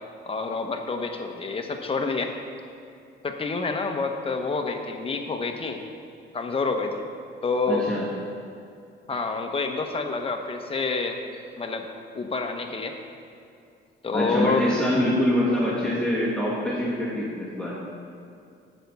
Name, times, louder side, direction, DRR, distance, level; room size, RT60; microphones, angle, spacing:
voice 1, 0.2-2.3 3.2-5.8 6.3-7.1 7.4-7.9 9.1-11.2 11.6-11.9 12.1-13.0 14.0-14.7, left 4 dB, 30° left, 4 dB, 1.0 m, -28 dB
voice 2, 7.7-8.1 14.1-17.7, left 1 dB, 5° left, -8 dB, 2.1 m, -24 dB
7.3 x 5.5 x 6.9 m, 2.5 s
cardioid pair, 90°, 20 cm